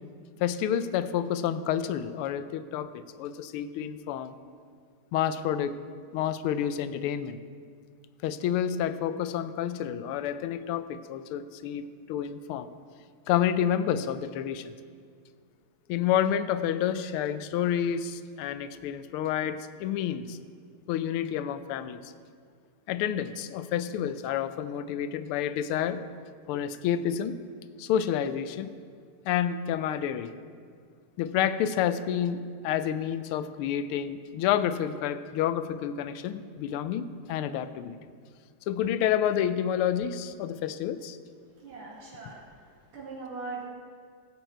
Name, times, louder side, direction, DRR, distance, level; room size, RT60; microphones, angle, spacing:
voice 1, 0.4-4.4 5.1-5.8 6.1-7.4 8.2-12.7 13.3-14.7 15.9-20.4 20.9-22.1 22.9-26.0 26.5-27.3 27.8-28.7 29.3-30.3 31.2-38.0 38.7-41.2, left 9 dB, 85° left, 12 dB, 1.5 m, -29 dB
voice 2, 41.5-43.7, right 4 dB, 85° right, -6 dB, 2.9 m, -41 dB
16.0 x 7.2 x 4.5 m, 2.1 s
omnidirectional pair, 2.4 m